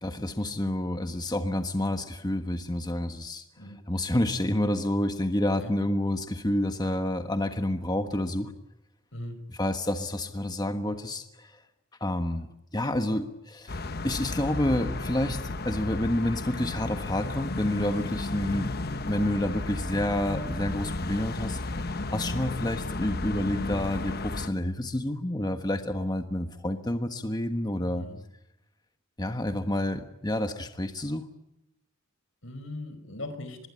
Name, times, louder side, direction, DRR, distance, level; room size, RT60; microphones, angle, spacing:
voice 1, 0.0-3.4 3.9-8.5 9.5-11.6 12.0-12.5 12.7-18.7 19.1-21.8 22.1-28.1 29.2-31.2, left 1 dB, 20° left, 7 dB, 1.3 m, -29 dB
voice 2, 9.1-9.4 27.9-28.2 32.4-33.6, left 1 dB, 80° left, 10 dB, 4.9 m, -39 dB
sound 1, 13.7-24.5, left 2 dB, 50° left, 1.1 m, -33 dB
24.5 x 21.5 x 9.7 m, 0.86 s
head